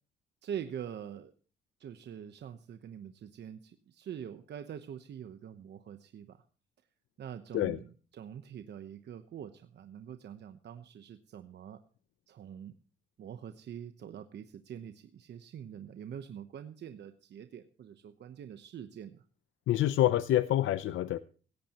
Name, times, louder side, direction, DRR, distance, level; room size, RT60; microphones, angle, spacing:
voice 1, 0.4-1.3 1.8-6.4 7.2-11.8 12.3-12.8 13.2-19.2, right 9 dB, 60° right, 9 dB, 1.0 m, -44 dB
voice 2, 19.7-21.2, left 13 dB, 75° left, 14 dB, 0.6 m, -27 dB
17.0 x 15.5 x 3.0 m, 0.39 s
cardioid pair, 90°, 20 cm